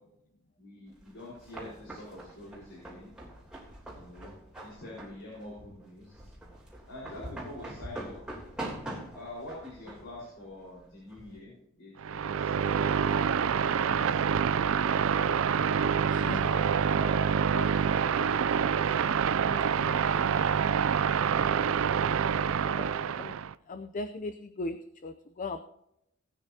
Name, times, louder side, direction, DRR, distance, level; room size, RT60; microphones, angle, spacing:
voice 1, 0.6-3.1 3.9-6.3 6.9-8.2 9.1-11.5 11.8-14.9 15.8-17.3 18.0-19.0 19.4-23.1, left 1 dB, 65° left, -5 dB, 4.7 m, -46 dB
sound 1, 0.9-11.4, right 1 dB, 5° right, 3.2 m, -44 dB
sound 2, 12.0-23.5, right 7 dB, 70° right, 0.4 m, -27 dB
voice 2, 16.1-16.5 17.5-17.7 22.7-22.9 23.2-23.3 23.7-25.6, left 2 dB, 40° left, 9 dB, 0.6 m, -38 dB
19.0 x 9.3 x 2.8 m, 0.80 s
head